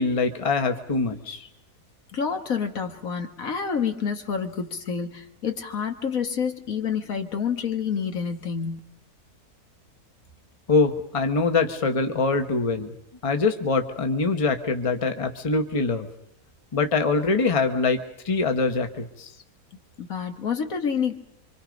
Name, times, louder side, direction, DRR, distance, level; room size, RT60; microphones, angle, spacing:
voice 1, 0.0-1.5 10.7-12.9 13.2-16.1 16.7-19.3, left 3 dB, 25° left, 7 dB, 1.2 m, -24 dB
voice 2, 2.1-8.8 20.0-21.1, left 6 dB, 65° left, 6 dB, 1.8 m, -28 dB
26.0 x 25.0 x 5.2 m, 0.73 s
omnidirectional pair, 1.6 m